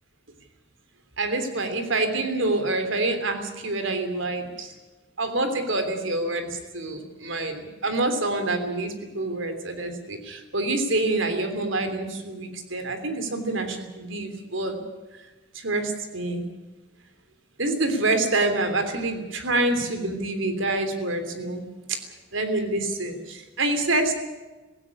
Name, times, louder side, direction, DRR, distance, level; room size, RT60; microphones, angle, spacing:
voice 1, 1.2-4.7 5.2-14.8 15.5-16.4 17.6-22.0 22.3-24.1, right 2 dB, 70° right, 8 dB, 3.3 m, -27 dB
17.0 x 16.5 x 9.8 m, 1.2 s
head